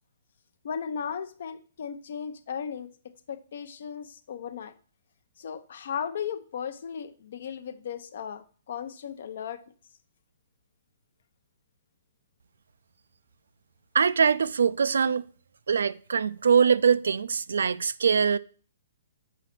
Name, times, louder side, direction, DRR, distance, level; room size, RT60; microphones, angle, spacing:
voice 1, 0.6-2.9 3.3-4.7 5.4-9.6, left 7 dB, 60° left, 0.6 m, -36 dB
voice 2, 13.9-15.2 15.7-18.4, right 6 dB, 85° right, 0.3 m, -23 dB
5.0 x 4.0 x 5.8 m
hypercardioid pair, 155°, 0 cm